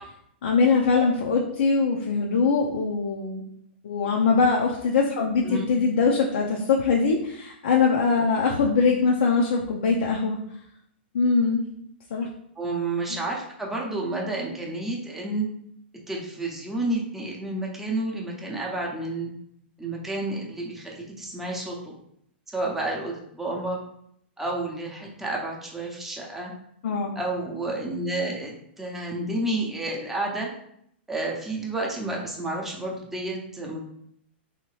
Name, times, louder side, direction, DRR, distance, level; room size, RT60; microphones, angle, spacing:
voice 1, 0.4-3.4 3.8-10.4 11.1-11.7 12.1-12.3 26.8-27.2, left 4 dB, 75° left, -1 dB, 0.5 m, -22 dB
voice 2, 12.6-15.5 16.1-19.3 19.8-21.9 22.5-23.8 24.4-26.5 27.2-30.5 31.1-33.8, right 2 dB, 5° right, -2 dB, 0.6 m, -30 dB
3.2 x 2.8 x 3.1 m, 0.73 s
hypercardioid pair, 135°, 6 cm